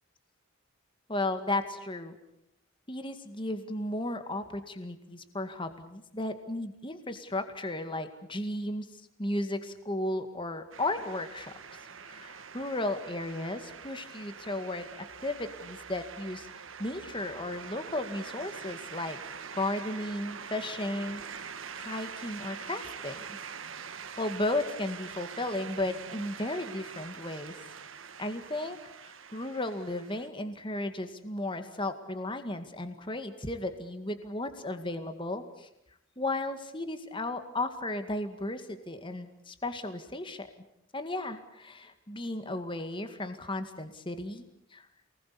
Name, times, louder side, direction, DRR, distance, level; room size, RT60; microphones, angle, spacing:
voice 1, 1.1-2.2 2.9-8.9 9.2-11.5 12.0-19.2 19.5-23.2 24.2-27.5 28.2-35.7 36.2-40.5 40.9-44.4 44.7-44.9, left 2 dB, 25° left, 8 dB, 2.1 m, -35 dB
sound 1, 10.7-30.3, right 6 dB, 80° right, 1.6 m, -44 dB
28.5 x 20.5 x 8.6 m, 0.81 s
head